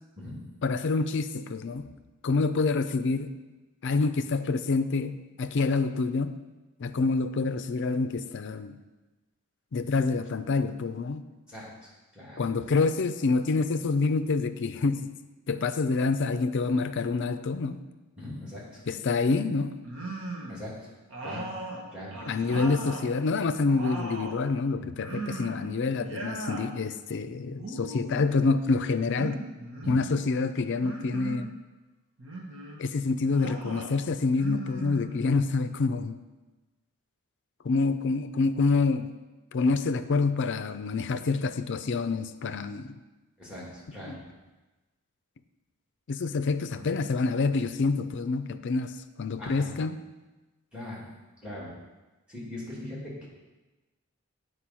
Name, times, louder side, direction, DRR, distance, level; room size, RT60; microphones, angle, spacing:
voice 1, 0.6-1.9 2.2-3.3 3.8-6.4 6.8-8.8 9.7-11.2 12.4-15.1 15.5-17.8 18.9-19.8 22.3-29.4 29.9-31.5 32.8-36.2 37.6-39.1 39.5-42.9 43.9-44.2 46.1-48.9 49.2-50.0, left 4 dB, 55° left, 11 dB, 0.4 m, -27 dB
voice 2, 11.5-12.4 18.2-18.8 20.5-20.8 21.2-21.5 21.9-22.2 22.5-22.6 24.7-24.9 29.8-30.0 43.4-44.2 46.7-46.8 49.4-49.7 50.7-51.0 51.4-51.7 52.3-53.3, left 1 dB, 5° right, -5 dB, 2.6 m, -41 dB
sound 1, 19.8-20.6 21.1-23.1 23.5-24.4 25.0-25.7 26.0-26.7 27.5-28.3 29.1-30.1 30.8-31.5 32.2-32.8 33.3-33.9 34.3-35.4, right 2 dB, 60° right, 1.3 m, -38 dB
8.6 x 4.8 x 6.1 m, 1.1 s
head